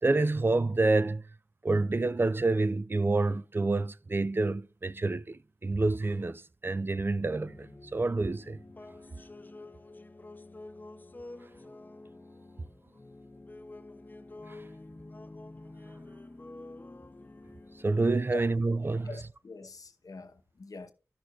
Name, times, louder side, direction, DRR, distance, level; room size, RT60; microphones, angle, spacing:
voice 1, 0.0-1.2 1.6-8.6 14.5-14.6 17.8-19.2, right 3 dB, 35° right, 0.4 m, -28 dB
sound 1, 7.4-18.7, left 2 dB, 30° left, 0.4 m, -48 dB
voice 2, 19.0-20.9, left 3 dB, 70° left, 0.8 m, -43 dB
13.5 x 6.5 x 2.3 m
cardioid pair, 45°, 6 cm